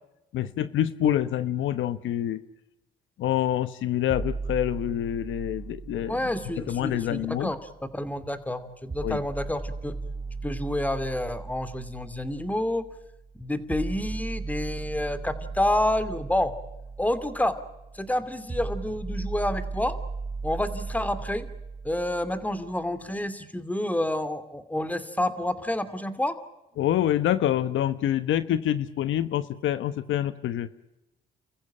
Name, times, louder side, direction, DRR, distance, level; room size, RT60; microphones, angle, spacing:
voice 1, 0.3-2.4 3.2-7.5 9.0-9.2 26.8-30.7, left 11 dB, 75° left, 14 dB, 1.0 m, -26 dB
sound 1, 4.1-8.1 8.9-22.9, right 3 dB, 25° right, 3.6 m, -37 dB
voice 2, 6.1-7.6 7.9-9.9 10.4-12.8 13.4-16.5 17.0-17.5 17.9-19.9 20.4-21.5 21.8-26.3, left 1 dB, 10° left, 12 dB, 2.5 m, -28 dB
30.0 x 15.0 x 8.9 m, 0.94 s
cardioid pair, 90°, 20 cm